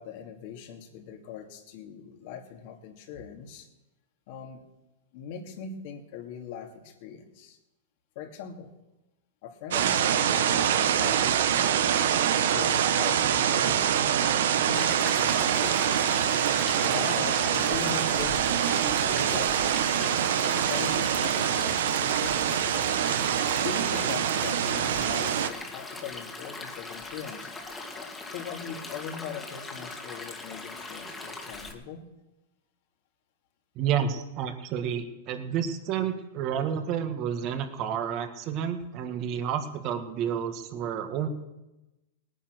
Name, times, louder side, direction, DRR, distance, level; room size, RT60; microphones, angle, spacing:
voice 1, 0.0-3.7 4.3-4.6 5.1-7.6 8.2-8.7 9.4-16.0 16.8-19.5 20.4-22.5 23.4-27.5 27.9-32.0, left 7 dB, 55° left, 4 dB, 2.5 m, -41 dB
sound 1, 9.7-25.5, right 9 dB, 75° right, 1.1 m, -25 dB
Stream, 14.7-31.7, left 3 dB, 10° left, 2.1 m, -40 dB
voice 2, 33.8-41.3, right 8 dB, 40° right, 8 dB, 1.9 m, -30 dB
18.0 x 10.0 x 6.4 m, 1.0 s
hypercardioid pair, 130°, 0 cm